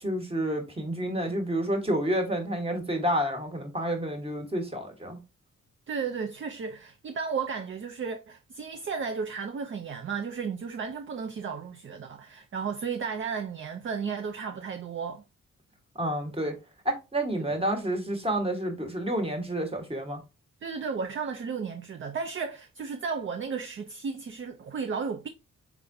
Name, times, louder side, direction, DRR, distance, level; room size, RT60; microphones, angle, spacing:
voice 1, 0.0-5.2 16.0-16.6 16.8-20.2, right 1 dB, 20° right, 1.3 m, -29 dB
voice 2, 5.9-15.2 17.4-17.6 20.6-25.3, right 5 dB, 40° right, 0.5 m, -34 dB
4.6 x 3.6 x 2.6 m
cardioid pair, 95°, 32 cm